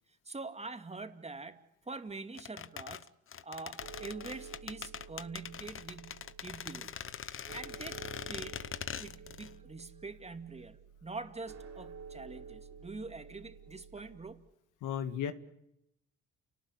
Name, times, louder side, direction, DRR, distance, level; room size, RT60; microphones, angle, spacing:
voice 1, 0.3-1.6 1.9-3.1 3.4-7.0 7.5-8.6 9.0-14.5, right 3 dB, 20° right, 7 dB, 2.4 m, -45 dB
sound 1, 2.4-9.5 9.8-9.9, left 8 dB, 45° left, 1.0 m, -42 dB
sound 2, 3.8-14.3, right 6 dB, 60° right, 4.2 m, -51 dB
voice 2, 14.8-15.3, left 9 dB, 85° left, 10 dB, 1.9 m, -34 dB
29.5 x 18.5 x 9.8 m, 0.83 s
cardioid pair, 90°, 30 cm